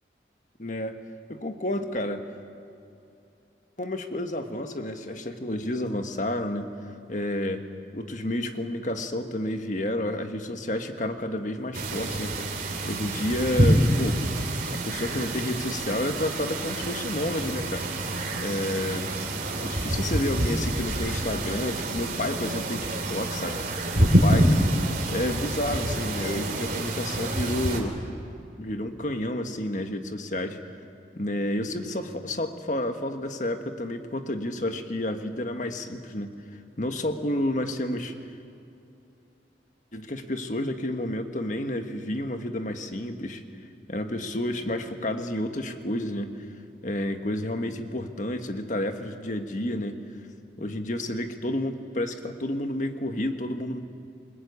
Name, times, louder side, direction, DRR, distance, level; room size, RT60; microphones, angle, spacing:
voice 1, 0.6-1.0 1.3-2.2 3.8-6.7 7.1-7.6 7.9-12.5 12.8-14.2 14.7-17.9 18.4-19.1 19.6-23.6 23.9-24.6 25.1-28.0 28.6-30.6 31.2-36.3 36.8-38.1 39.9-43.4 43.9-46.3 46.8-50.0 50.6-53.8, left 1 dB, 45° left, 6 dB, 1.6 m, -30 dB
sound 1, 11.7-27.8, right 1 dB, 50° right, 3.1 m, -27 dB
28.5 x 20.0 x 8.3 m, 2.7 s
head